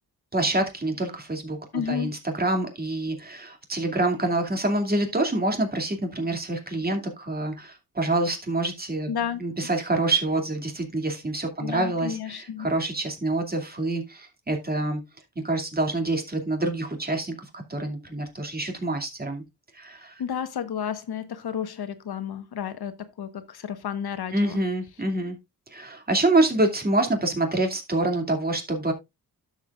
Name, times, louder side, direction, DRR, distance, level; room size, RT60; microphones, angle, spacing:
voice 1, 0.3-9.1 9.4-15.0 15.4-19.4 19.7-20.2 24.3-25.4 25.7-28.9, right 2 dB, 25° right, 2.5 m, -26 dB
voice 2, 1.7-2.1 9.1-9.5 11.6-12.7 20.2-24.6, left 8 dB, 85° left, 1.3 m, -32 dB
12.0 x 7.2 x 2.4 m
wide cardioid pair, 115°, 38 cm